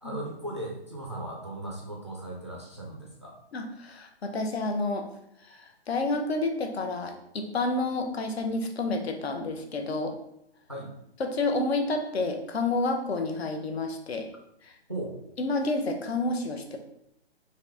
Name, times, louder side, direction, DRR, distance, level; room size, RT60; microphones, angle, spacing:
voice 1, 0.0-3.4 10.7-10.9 14.9-15.2, right 1 dB, 25° right, -2 dB, 0.4 m, -37 dB
voice 2, 3.5-5.1 5.4-10.1 11.2-14.3 14.6-14.7 15.4-16.8, left 2 dB, 70° left, 5 dB, 0.8 m, -29 dB
3.8 x 2.7 x 3.3 m, 0.75 s
hypercardioid pair, 175°, 33 cm